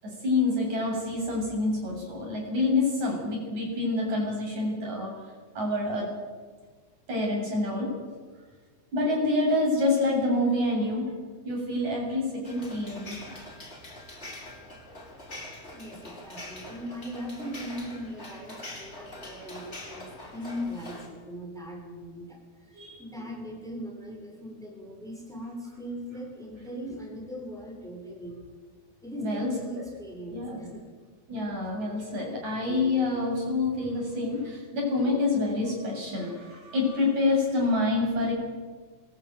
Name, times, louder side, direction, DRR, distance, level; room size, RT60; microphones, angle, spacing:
voice 1, 0.0-5.1 5.6-6.1 7.1-7.9 8.9-11.1 11.5-13.2 22.7-23.0 29.2-29.5 30.3-30.6 31.3-38.3, left 2 dB, 75° right, -1 dB, 8.6 m, -27 dB
sound 1, 12.4-21.1, left 1 dB, 20° left, 4.9 m, -44 dB
voice 2, 15.7-28.4 29.0-30.8, equal, ahead, 0 dB, 5.7 m, -39 dB
23.0 x 21.0 x 9.4 m, 1.5 s
omnidirectional pair, 3.4 m